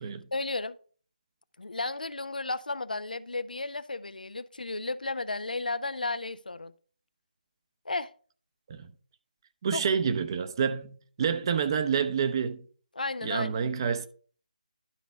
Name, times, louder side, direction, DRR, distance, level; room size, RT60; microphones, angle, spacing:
voice 1, 0.3-0.8 1.6-6.7 7.9-8.1 9.7-9.8 12.9-13.5, left 3 dB, 75° left, 0.5 m, -33 dB
voice 2, 9.6-12.6 13.2-14.1, right 6 dB, 30° right, 0.7 m, -28 dB
12.0 x 4.0 x 4.6 m
figure-of-eight pair, 155°, 5 cm